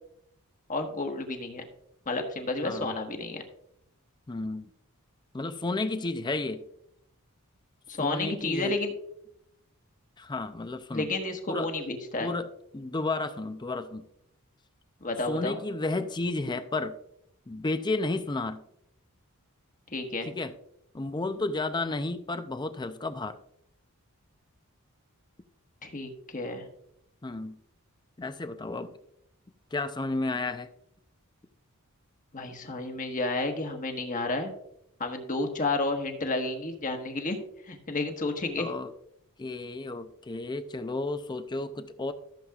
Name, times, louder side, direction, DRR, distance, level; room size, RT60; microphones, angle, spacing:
voice 1, 0.7-1.6 2.1-3.4 7.9-8.9 10.9-12.3 15.0-15.6 19.9-20.3 25.8-26.6 32.3-34.5 35.0-37.4 37.7-38.7, left 2 dB, 35° left, 4 dB, 1.3 m, -31 dB
voice 2, 2.6-3.0 4.3-4.7 5.3-6.6 8.0-8.8 10.2-11.1 11.5-11.7 12.2-12.5 12.7-14.0 15.3-17.0 17.5-18.6 20.2-20.5 20.9-23.4 27.2-27.6 28.2-28.9 29.7-30.7 38.6-38.9 39.4-42.1, left 2 dB, 20° left, 10 dB, 0.5 m, -32 dB
14.5 x 7.2 x 2.4 m, 0.76 s
head